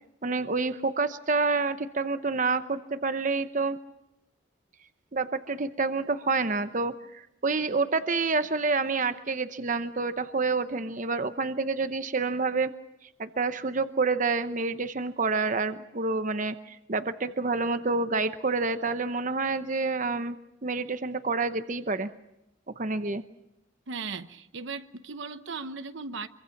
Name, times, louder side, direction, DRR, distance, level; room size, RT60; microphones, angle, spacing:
voice 1, 0.2-3.8 5.1-12.7 13.2-22.1 22.8-23.2, right 3 dB, 40° right, 0.8 m, -28 dB
voice 2, 23.9-26.3, right 4 dB, 70° right, 0.9 m, -37 dB
25.0 x 24.0 x 5.9 m
head